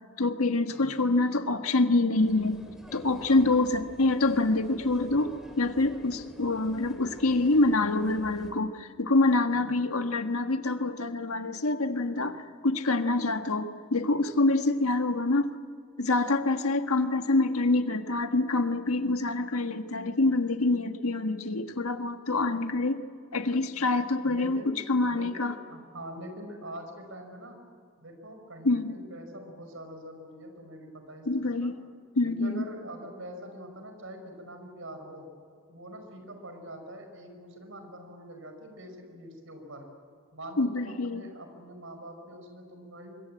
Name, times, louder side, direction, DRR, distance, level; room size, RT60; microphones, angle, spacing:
voice 1, 0.2-2.6 2.9-15.5 16.0-23.0 23.3-25.5 28.6-29.0 31.3-31.7 32.1-32.6 40.6-41.3, left 2 dB, 90° left, 7 dB, 1.5 m, -26 dB
sound 1, 2.1-8.5, equal, ahead, 3.6 m, -50 dB
voice 2, 24.2-24.8 25.0-27.6 28.0-31.7 32.2-35.3 35.7-39.9 40.3-43.2, equal, 65° right, 6 dB, 5.5 m, -44 dB
25.0 x 22.5 x 8.8 m, 2.2 s
head